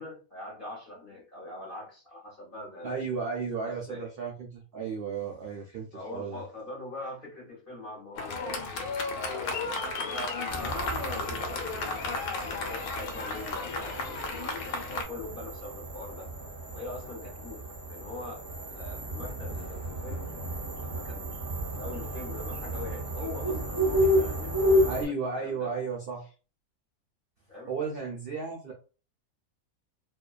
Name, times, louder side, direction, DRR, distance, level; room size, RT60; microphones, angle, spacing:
voice 1, 0.0-3.3 3.6-4.1 5.9-8.6 9.1-12.3 12.7-16.3 16.7-20.4 20.8-21.4 21.7-25.7 27.5-27.7, left 2 dB, 45° left, 0.9 m, -43 dB
voice 2, 2.8-6.4 24.9-26.3 27.7-28.7, right 5 dB, 75° right, 0.5 m, -34 dB
Fireworks, 8.2-15.0, left 3 dB, 85° left, 1.1 m, -34 dB
sound 1, 10.5-25.1, equal, 20° right, 0.5 m, -32 dB
2.6 x 2.2 x 2.3 m
omnidirectional pair, 1.5 m